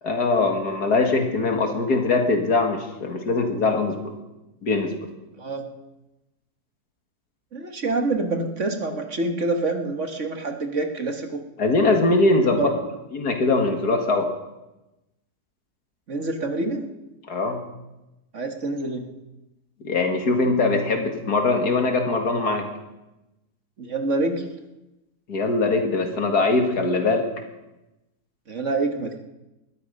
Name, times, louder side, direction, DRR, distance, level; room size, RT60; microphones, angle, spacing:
voice 1, 0.0-4.1 4.6-4.9 11.6-12.7 13.1-14.3 17.3-17.6 19.8-22.7 25.3-27.3, left 3 dB, 70° left, 4 dB, 2.6 m, -22 dB
voice 2, 5.4-5.7 7.5-11.4 12.6-12.7 16.1-16.9 18.3-19.1 23.8-24.5 28.5-29.2, right 2 dB, 50° right, 5 dB, 1.8 m, -26 dB
20.5 x 13.0 x 5.4 m, 0.98 s
omnidirectional pair, 1.7 m